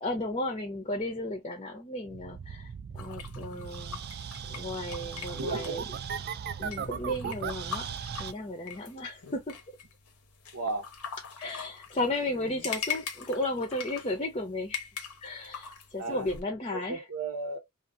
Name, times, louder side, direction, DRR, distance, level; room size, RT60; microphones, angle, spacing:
voice 1, 0.0-4.0 4.5-5.8 6.6-7.9 8.2-9.5 11.4-14.9 15.2-17.0, left 1 dB, 25° left, 0.6 m, -34 dB
sound 1, 2.1-8.3, right 7 dB, 45° right, 0.3 m, -38 dB
sound 2, 3.0-16.4, left 7 dB, 90° left, 0.9 m, -42 dB
voice 2, 5.3-5.8 10.5-10.9 16.0-16.3 16.7-17.6, right 3 dB, 70° right, 0.8 m, -34 dB
2.7 x 2.5 x 2.5 m
head